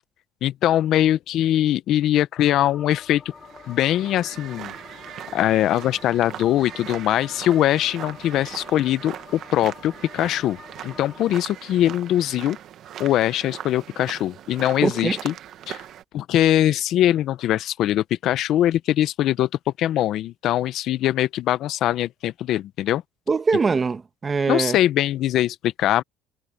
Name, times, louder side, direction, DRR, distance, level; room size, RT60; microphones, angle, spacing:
voice 1, 0.4-3.3 3.7-4.7 5.3-10.6 10.8-12.6 13.0-15.3 15.7-15.8 16.1-19.5 19.8-23.0 24.5-26.0, left 12 dB, 60° left, 0.7 m, -22 dB
sound 1, 2.3-11.2, left 6 dB, 30° left, 7.8 m, -46 dB
sound 2, 3.3-16.0, right 11 dB, 55° right, 1.3 m, -40 dB
voice 2, 14.8-15.2 23.3-24.8, right 4 dB, 25° right, 1.3 m, -22 dB
cardioid pair, 125°, 0 cm